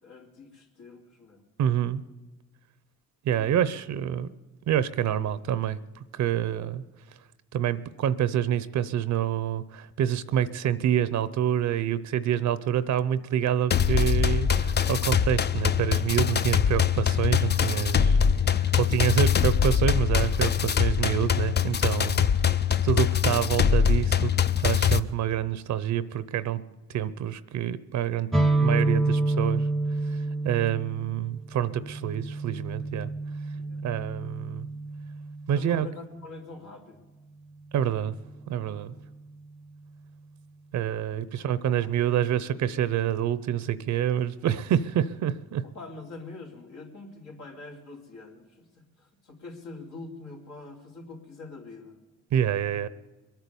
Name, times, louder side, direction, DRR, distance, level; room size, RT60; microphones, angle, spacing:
voice 1, 0.0-1.4 3.4-3.7 4.1-4.2 33.5-33.8 35.5-37.0 41.2-41.3 41.6-42.0 45.6-52.0, left 3 dB, 75° left, -2 dB, 3.4 m, -44 dB
voice 2, 1.6-2.0 3.2-4.3 4.7-5.8 6.1-6.8 7.5-18.2 18.8-22.2 22.8-24.3 24.6-26.6 26.9-28.3 28.6-29.7 30.4-33.1 33.8-34.7 35.5-35.9 37.7-38.2 38.5-38.9 40.7-45.6 52.3-52.9, right 10 dB, 70° right, 15 dB, 0.7 m, -27 dB
sound 1, 13.7-25.0, left 7 dB, 35° left, 0.5 m, -23 dB
sound 2, 28.3-35.9, right 2 dB, ahead, 0.8 m, -28 dB
22.0 x 9.2 x 6.9 m, 1.2 s
cardioid pair, 90°, 30 cm